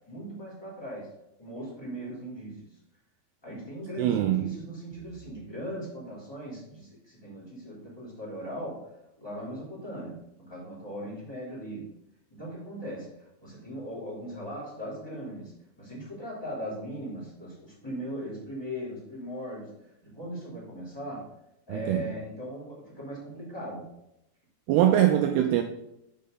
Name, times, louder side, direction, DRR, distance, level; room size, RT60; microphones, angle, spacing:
voice 1, 0.1-1.1 1.4-2.8 3.4-8.9 9.2-12.0 12.3-21.3 21.7-23.9, equal, 5° left, 2.2 m, -39 dB
voice 2, 4.0-4.5 21.7-22.0 24.7-25.6, right 11 dB, 90° right, 2.3 m, -23 dB
6.7 x 6.5 x 3.8 m
omnidirectional pair, 5.1 m